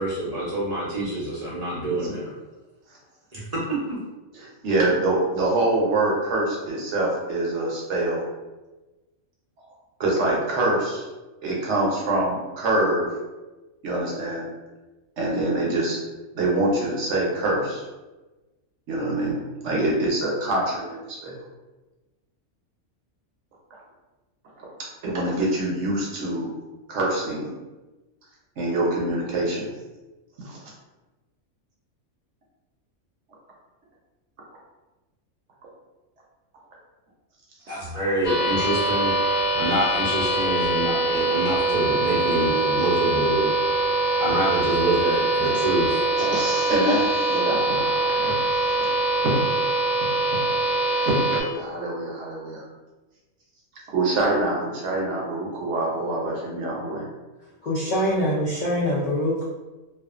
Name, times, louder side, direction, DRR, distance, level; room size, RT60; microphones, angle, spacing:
voice 1, 0.0-2.3 3.3-3.4 3.9-4.0 37.7-39.1 39.5-43.5 44.2-46.0, right 1 dB, 45° right, -8 dB, 0.5 m, -26 dB
voice 2, 4.3-8.2 10.0-11.1 11.4-13.1 13.8-14.4 15.2-16.0 16.3-17.8 18.9-21.4 24.6-24.7 25.0-26.5 26.9-27.5 28.6-29.7 30.4-30.6 46.2-48.9 49.2-49.4 49.7-49.9 50.8-52.7 53.9-57.0, right 2 dB, 65° right, -3 dB, 0.9 m, -25 dB
sound 1, 38.2-51.4, right 2 dB, 30° left, 0.7 m, -23 dB
voice 3, 57.6-59.4, equal, 80° left, -6 dB, 0.4 m, -24 dB
2.4 x 2.3 x 2.4 m, 1.1 s
omnidirectional pair, 1.4 m